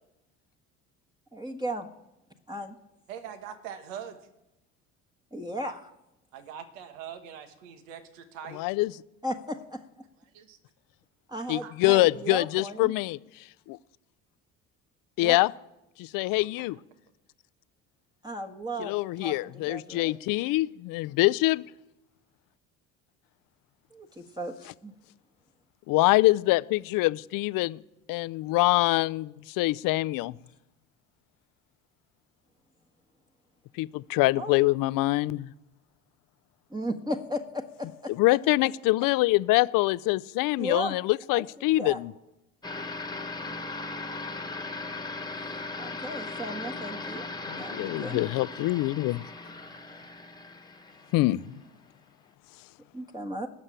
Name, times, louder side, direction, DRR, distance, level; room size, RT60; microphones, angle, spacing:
voice 1, 1.3-1.9 2.5-2.7 5.3-5.9 9.2-9.8 11.3-12.9 15.2-15.4 18.2-20.2 23.9-24.9 34.4-34.6 36.7-38.1 40.6-40.9 41.3-42.0 45.8-47.3 47.6-48.3 52.9-53.5, equal, 10° right, 2 dB, 1.4 m, -35 dB
voice 2, 3.1-4.3 6.3-8.6 10.3-10.6 11.6-11.7, right 8 dB, 80° right, 9 dB, 1.5 m, -42 dB
voice 3, 8.6-8.9 11.5-13.2 13.7-13.8 15.2-15.5 16.0-16.8 18.8-21.6 25.9-27.8 28.1-30.4 33.8-35.5 38.2-42.1 47.5-49.2 51.1-51.4, left 20 dB, 60° left, 18 dB, 0.6 m, -25 dB
sound 1, 42.6-51.7, left 3 dB, 10° left, 1.5 m, -38 dB
18.5 x 6.5 x 8.9 m, 0.92 s
hypercardioid pair, 65°, 38 cm